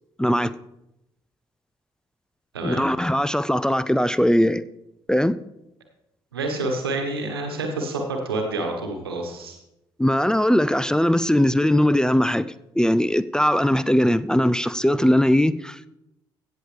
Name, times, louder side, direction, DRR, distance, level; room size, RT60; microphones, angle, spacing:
voice 1, 0.2-0.5 2.6-4.6 5.1-5.4 10.0-12.5 12.8-15.9, equal, 5° left, 0.4 m, -20 dB
voice 2, 6.3-9.6, right 2 dB, 90° right, 1.2 m, -28 dB
16.5 x 7.0 x 3.3 m
hypercardioid pair, 40°, 12 cm